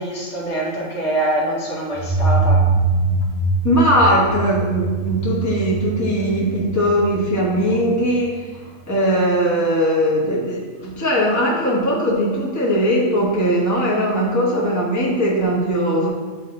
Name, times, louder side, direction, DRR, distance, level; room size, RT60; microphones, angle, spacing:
voice 1, 0.0-2.6, right 1 dB, 70° left, -3 dB, 1.5 m, -24 dB
sound 1, 1.9-8.5, right 3 dB, 35° right, 1.8 m, -22 dB
voice 2, 3.6-8.5 8.9-16.1, equal, 15° left, -5 dB, 1.1 m, -19 dB
7.8 x 2.9 x 4.3 m, 1.4 s
omnidirectional pair, 1.3 m